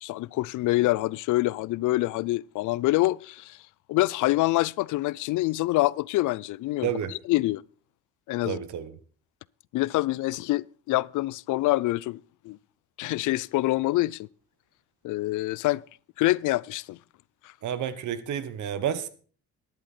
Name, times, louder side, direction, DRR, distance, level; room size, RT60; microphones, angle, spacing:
voice 1, 0.0-3.6 3.9-6.9 7.3-7.6 8.3-8.6 9.7-12.6 13.0-14.3 15.0-15.8 16.2-17.0, left 18 dB, 80° left, 0.5 m, -26 dB
voice 2, 6.8-7.1 8.4-8.9 17.6-19.1, right 9 dB, 75° right, 1.3 m, -30 dB
12.5 x 10.5 x 4.3 m
cardioid pair, 90°, 30 cm